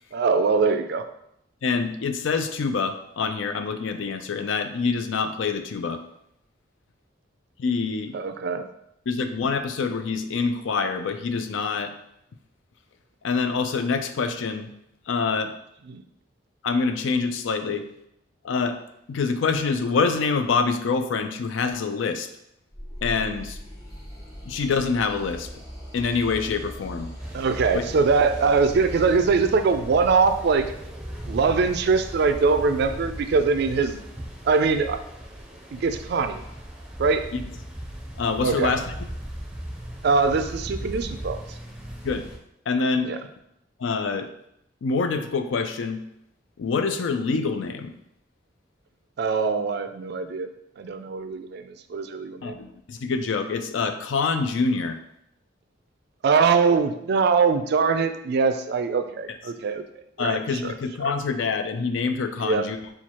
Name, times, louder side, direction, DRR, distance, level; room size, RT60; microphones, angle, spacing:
voice 1, 0.1-1.0 8.1-8.7 15.9-16.0 27.3-30.7 31.3-34.0 34.4-35.0 35.7-36.4 37.0-37.3 38.4-38.7 40.0-41.4 43.0-43.2 49.2-50.5 50.8-52.6 56.2-59.8 60.2-60.7 62.4-62.7, right 4 dB, 60° right, 9 dB, 0.3 m, -22 dB
voice 2, 1.6-6.0 7.6-8.1 9.1-11.9 13.2-14.7 15.1-15.5 16.6-17.9 18.4-18.8 19.1-22.3 23.0-23.6 24.5-25.5 25.9-27.1 27.7-27.8 38.2-38.9 42.0-42.2 42.7-43.1 43.8-44.3 44.8-46.0 46.6-47.9 52.4-55.0 60.2-62.8, left 4 dB, 80° left, 8 dB, 0.4 m, -26 dB
sound 1, 22.7-29.1, equal, 20° left, 0.9 m, -39 dB
sound 2, 27.2-42.4, equal, 5° right, 0.5 m, -37 dB
4.5 x 2.3 x 4.2 m, 0.77 s
head